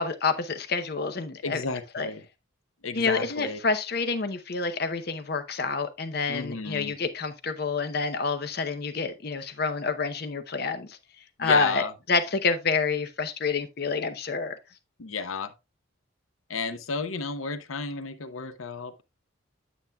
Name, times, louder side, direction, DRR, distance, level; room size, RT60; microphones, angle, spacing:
voice 1, 0.0-1.6 1.9-2.1 2.9-11.0 11.4-14.6, left 4 dB, 50° left, 0.7 m, -28 dB
voice 2, 1.4-2.2 2.8-3.6 6.3-7.0 11.4-11.9 15.0-15.5 16.5-19.0, left 4 dB, 90° left, 0.7 m, -33 dB
9.2 x 7.0 x 2.3 m
head